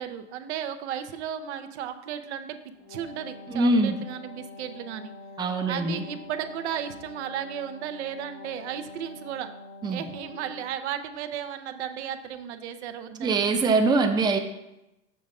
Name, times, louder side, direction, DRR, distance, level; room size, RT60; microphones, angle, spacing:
voice 1, 0.0-2.6 2.9-5.1 5.7-9.5 9.9-13.4, right 9 dB, 85° right, 8 dB, 0.7 m, -34 dB
Wind instrument woodwind instrument, 2.7-10.7, left 3 dB, 85° left, 1.5 m, -45 dB
voice 2, 3.5-4.0 5.4-6.0 9.8-10.0 13.2-14.4, right 3 dB, 15° right, 5 dB, 0.5 m, -23 dB
6.9 x 3.5 x 5.3 m, 0.91 s
supercardioid pair, 125°, 33 cm